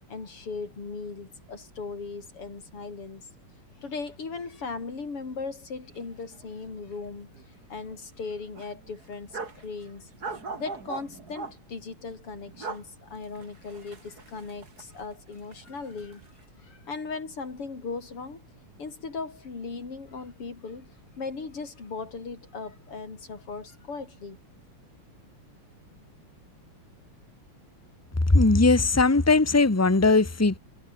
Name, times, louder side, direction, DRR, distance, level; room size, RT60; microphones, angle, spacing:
voice 1, 0.1-3.3 3.8-10.1 10.6-16.3 16.6-18.4 18.8-24.4, left 4 dB, 85° left, 5.4 m, -38 dB
sound 1, 5.9-6.1 6.3-6.5 6.9-7.6 7.9-8.0 8.5-9.6 10.2-11.5 12.4-12.8 13.2-15.2 15.5-16.3, right 4 dB, 45° right, 3.6 m, -39 dB
voice 2, 28.3-30.6, left 3 dB, 10° left, 1.2 m, -19 dB
omnidirectional pair, 2.4 m